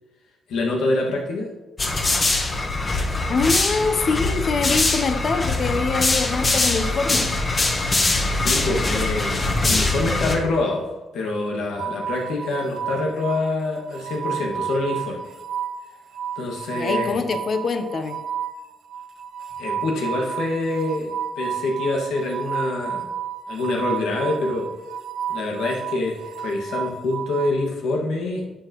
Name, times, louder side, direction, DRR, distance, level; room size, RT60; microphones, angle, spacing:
voice 1, 0.5-1.5 8.3-10.9 11.1-15.3 16.4-17.2 19.6-23.1 23.5-24.7 25.3-28.5, left 2 dB, 85° left, -1 dB, 2.0 m, -26 dB
sound 1, 1.8-10.4, left 2 dB, 30° left, 1.3 m, -22 dB
voice 2, 3.3-7.3 16.7-18.2, left 4 dB, 50° left, 7 dB, 0.9 m, -24 dB
sound 2, 11.8-27.5, right 8 dB, 75° right, 1.3 m, -31 dB
11.0 x 7.9 x 3.1 m, 1.1 s
cardioid pair, 115°, 0 cm